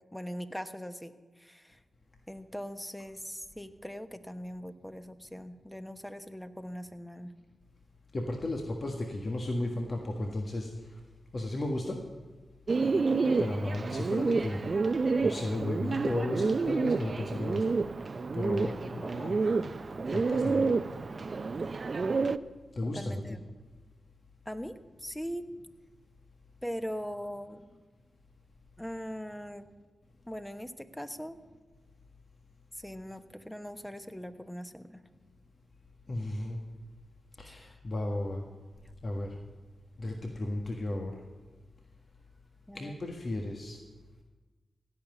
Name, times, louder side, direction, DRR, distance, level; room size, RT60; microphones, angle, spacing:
voice 1, 0.1-1.1 1.4-1.8 2.3-7.3 12.8-13.1 22.9-23.4 24.5-25.5 26.6-27.6 28.8-29.6 30.3-31.4 32.8-35.1 37.5-37.7 42.7-42.9, equal, 5° left, 9 dB, 1.1 m, -41 dB
voice 2, 8.1-10.7 11.3-12.0 13.4-14.6 15.2-17.6 18.3-19.4 20.1-20.6 22.8-23.2 36.1-36.6 37.4-38.4 39.0-39.3 40.0-41.1 42.7-43.8, left 1 dB, 55° left, 1 dB, 1.5 m, -34 dB
Bird, 12.7-22.4, right 4 dB, 55° right, 0.5 m, -29 dB
16.5 x 5.8 x 9.5 m, 1.3 s
supercardioid pair, 40°, 0 cm